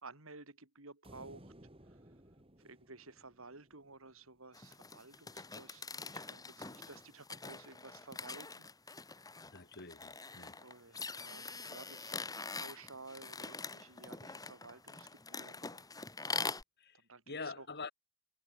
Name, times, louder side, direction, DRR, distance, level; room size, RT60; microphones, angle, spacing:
voice 1, 0.0-1.5 1.8-2.0 2.6-9.0 10.6-12.3 12.5-15.8 16.9-17.7, right 3 dB, 75° right, 4.5 m, -54 dB
sound 1, 1.0-4.4, right 1 dB, 25° right, 7.3 m, -59 dB
sound 2, 4.5-16.6, left 4 dB, 20° left, 2.4 m, -44 dB
voice 2, 9.4-10.6 16.8-17.0 17.3-17.9, left 4 dB, 55° left, 5.4 m, -45 dB
head